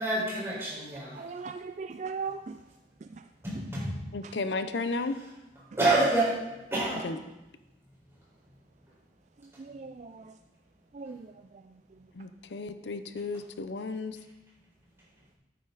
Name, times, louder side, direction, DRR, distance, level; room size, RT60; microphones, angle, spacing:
voice 1, 0.0-1.2 3.4-3.9 5.8-6.4 6.7-7.1, right 2 dB, 15° right, -7 dB, 4.7 m, -27 dB
voice 2, 1.2-2.6 3.0-3.1 4.2-4.4 9.6-10.3 10.9-11.3, right 5 dB, 40° right, 8 dB, 0.3 m, -38 dB
voice 3, 4.1-5.2 7.0-7.2 12.1-14.2, left 3 dB, 85° left, 11 dB, 0.6 m, -33 dB
13.5 x 9.2 x 4.0 m, 1.0 s
head